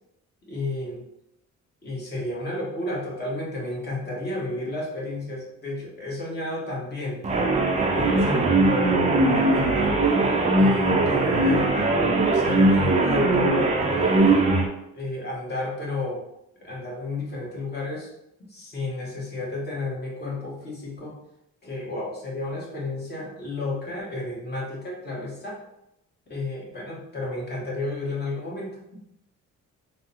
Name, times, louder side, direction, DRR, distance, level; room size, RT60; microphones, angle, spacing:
voice 1, 0.5-1.0 1.8-7.2 7.9-10.0 10.5-11.7 12.3-14.4 14.9-16.2 16.6-18.1 18.5-21.2 21.6-25.6 26.3-28.8, left 2 dB, 35° left, -4 dB, 1.2 m, -32 dB
sound 1, 7.2-14.7, right 2 dB, 25° right, 0.5 m, -20 dB
3.4 x 2.0 x 2.8 m, 0.83 s
cardioid pair, 90°, 30 cm